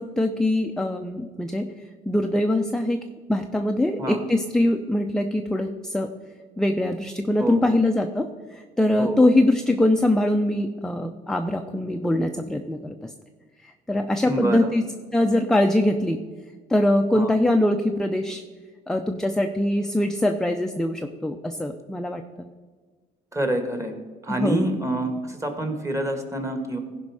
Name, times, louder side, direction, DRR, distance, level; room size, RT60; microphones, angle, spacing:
voice 1, 0.0-1.7 2.1-3.0 3.3-6.1 6.6-13.1 13.6-14.8 15.1-16.2 16.7-18.4 18.9-22.5 24.3-24.7, left 1 dB, 5° left, 4 dB, 0.5 m, -23 dB
voice 2, 7.4-7.8 9.0-9.3 14.3-14.7 17.1-17.4 23.3-23.9 24.2-26.8, right 1 dB, 15° right, 5 dB, 1.6 m, -27 dB
15.5 x 5.3 x 4.8 m, 1.4 s
cardioid pair, 110°, 17 cm